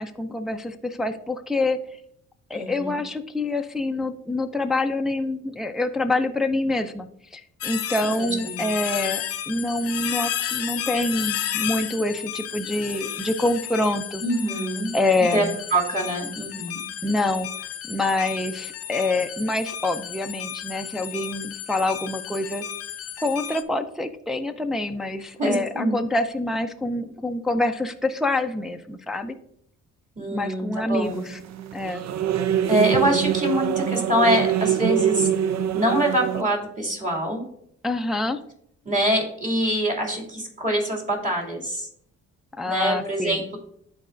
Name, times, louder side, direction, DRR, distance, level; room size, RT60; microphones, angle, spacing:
voice 1, 0.0-1.8 2.5-14.2 14.9-15.6 17.0-17.5 17.9-22.6 23.2-29.3 30.3-31.4 31.7-32.0 37.8-38.4 42.6-43.4, left 2 dB, ahead, 5 dB, 0.4 m, -26 dB
voice 2, 2.5-3.0 8.2-8.6 14.2-14.9 15.3-16.8 25.4-26.0 30.2-31.2 32.7-35.3 35.7-37.4 38.8-41.9 42.7-43.6, equal, 25° right, 0 dB, 2.5 m, -24 dB
sound 1, 7.6-23.6, left 10 dB, 50° left, 0.6 m, -32 dB
sound 2, 31.1-36.4, right 10 dB, 60° right, 0.5 m, -24 dB
11.5 x 4.1 x 2.5 m, 0.69 s
cardioid pair, 90°, 30 cm